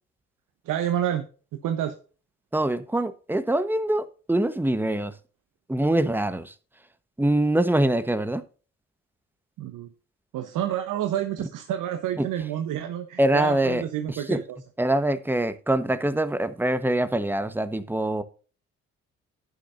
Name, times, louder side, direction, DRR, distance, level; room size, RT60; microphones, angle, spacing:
voice 1, 0.6-1.2 1.6-1.9 9.6-9.9 10.3-14.6, right 10 dB, 70° right, 1.1 m, -29 dB
voice 2, 2.5-5.1 5.7-6.5 7.2-8.4 12.2-12.3 13.2-13.8 14.3-14.4 14.8-18.2, right 1 dB, 5° right, 1.2 m, -24 dB
11.5 x 9.3 x 2.6 m
hypercardioid pair, 55°, 33 cm